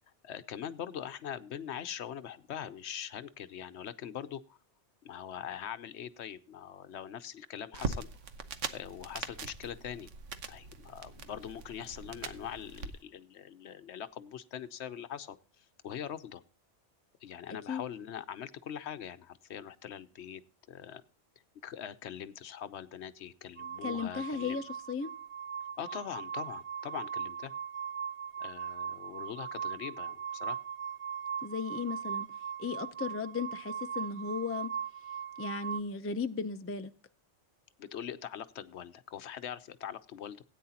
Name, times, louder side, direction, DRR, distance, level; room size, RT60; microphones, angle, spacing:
voice 1, 0.2-4.6 5.0-8.1 8.7-10.1 10.5-16.4 17.2-20.4 20.7-21.0 21.6-24.6 25.8-27.5 28.4-30.6 37.8-40.4, left 9 dB, 70° left, 0.9 m, -42 dB
sound 1, 7.7-12.9, right 5 dB, 90° right, 1.3 m, -41 dB
sound 2, 23.6-35.8, right 7 dB, 50° right, 0.4 m, -39 dB
voice 2, 23.8-25.1 31.4-32.3 32.6-34.7 35.4-36.9, left 5 dB, 20° left, 0.4 m, -36 dB
17.0 x 9.3 x 2.8 m
omnidirectional pair, 1.2 m